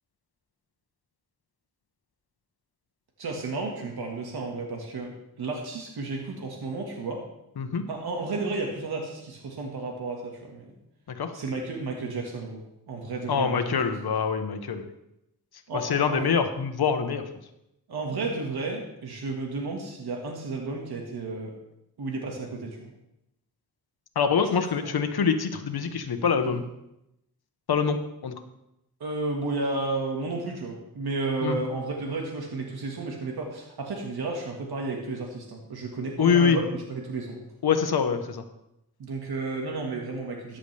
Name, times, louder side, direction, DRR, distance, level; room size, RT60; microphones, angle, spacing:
voice 1, 3.2-5.1 5.4-7.2 7.9-10.7 11.3-13.6 15.7-16.3 17.9-21.5 22.0-22.9 24.8-24.9 26.4-26.5 29.0-37.4 39.0-40.6, right 3 dB, 85° right, 0 dB, 1.8 m, -32 dB
voice 2, 13.3-14.9 15.7-17.2 24.1-26.7 27.7-28.3 31.4-31.6 36.2-36.6 37.6-38.4, left 6 dB, 80° left, 8 dB, 1.1 m, -25 dB
14.0 x 10.0 x 3.4 m, 0.85 s
wide cardioid pair, 95°, 37 cm